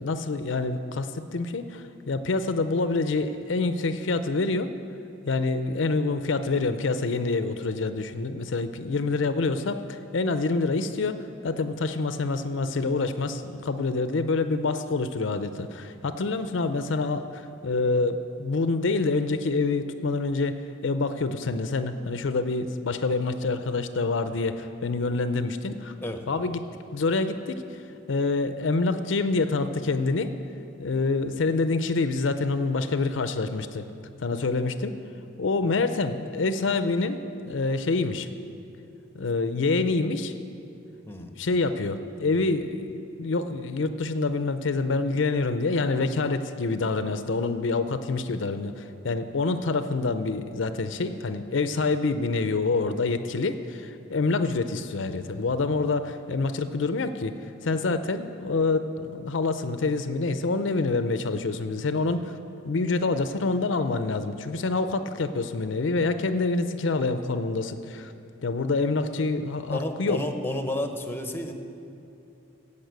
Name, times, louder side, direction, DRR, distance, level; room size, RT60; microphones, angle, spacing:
voice 1, 0.0-4.7 5.2-11.2 11.4-25.9 26.3-26.6 26.9-27.6 28.1-30.3 30.8-33.9 34.2-35.0 35.4-38.3 39.1-40.3 41.2-57.3 57.6-62.3 62.6-68.1 68.4-70.2, left 3 dB, 70° left, 10 dB, 0.5 m, -26 dB
voice 2, 41.1-41.4 69.7-71.5, left 1 dB, 10° left, 6 dB, 0.8 m, -31 dB
15.5 x 5.5 x 8.0 m, 2.7 s
head